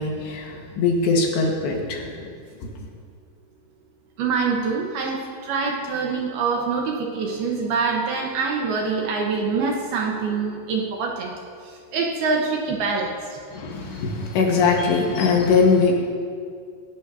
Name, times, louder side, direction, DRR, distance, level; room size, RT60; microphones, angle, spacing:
voice 1, 0.0-2.3 13.5-15.9, left 4 dB, 70° left, 0 dB, 3.2 m, -21 dB
voice 2, 4.2-5.2 5.4-11.3 11.9-13.1, right 4 dB, 75° right, 0 dB, 2.3 m, -25 dB
18.0 x 17.0 x 2.7 m, 2.2 s
omnidirectional pair, 5.8 m